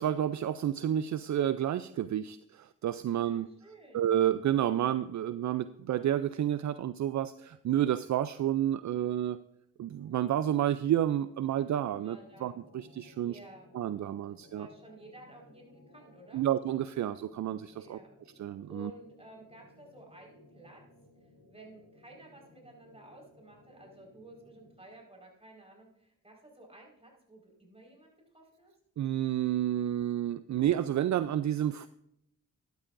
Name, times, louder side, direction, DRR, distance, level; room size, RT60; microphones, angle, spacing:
voice 1, 0.0-3.5 3.9-9.4 9.8-13.4 13.7-14.7 16.3-18.0 18.4-18.9 29.0-31.9, right 11 dB, 60° right, 13 dB, 0.4 m, -30 dB
voice 2, 3.0-4.1 12.0-12.6 13.2-13.7 14.3-16.4 17.8-18.1 18.7-20.8 21.2-28.7, right 1 dB, 20° right, -1 dB, 4.6 m, -54 dB
sound 1, 9.9-25.0, left 2 dB, 75° left, 4.2 m, -60 dB
13.0 x 11.5 x 2.6 m, 0.78 s
cardioid pair, 70°, 33 cm